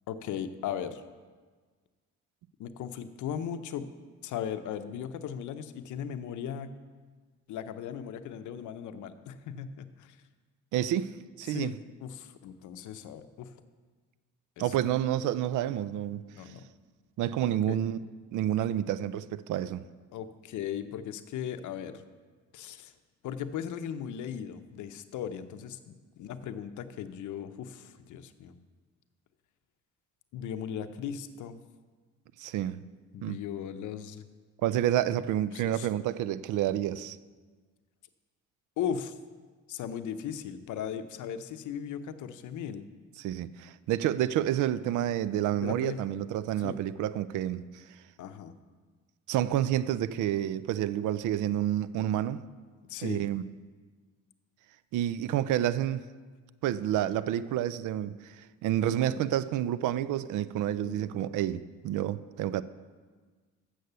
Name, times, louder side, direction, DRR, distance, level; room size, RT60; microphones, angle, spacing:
voice 1, 0.1-1.0 2.6-3.9 4.2-6.7 7.5-10.2 11.5-13.5 14.6-14.7 16.4-16.6 17.5-17.8 20.1-22.0 22.5-22.9 23.2-28.6 30.3-31.6 33.1-34.2 35.5-35.9 38.8-39.2 39.7-42.9 45.6-46.0 46.6-46.8 48.2-48.5 52.9-53.3 60.8-61.0, left 8 dB, 75° left, 0.6 m, -37 dB
voice 2, 10.7-11.1 11.4-11.7 14.6-16.2 17.2-18.0 18.3-19.9 32.4-32.8 33.2-33.4 34.6-37.2 43.2-47.8 49.3-52.4 53.0-53.4 54.9-56.0 56.6-62.6, right 12 dB, 80° right, 0.4 m, -29 dB
8.0 x 6.4 x 6.7 m
cardioid pair, 90°, 30 cm